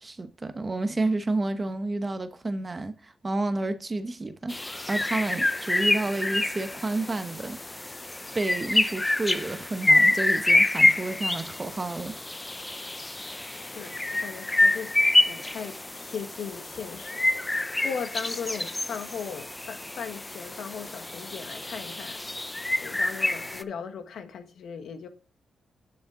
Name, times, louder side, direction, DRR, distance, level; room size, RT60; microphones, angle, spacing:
voice 1, 0.0-7.6 8.3-12.2, right 2 dB, 25° right, 0.8 m, -30 dB
sound 1, 4.5-23.6, left 2 dB, 15° left, 0.5 m, -27 dB
voice 2, 13.5-14.9 15.3-17.5 17.8-22.2 22.8-25.1, left 6 dB, 80° left, 1.3 m, -38 dB
9.7 x 6.4 x 3.7 m
cardioid pair, 115°, 0 cm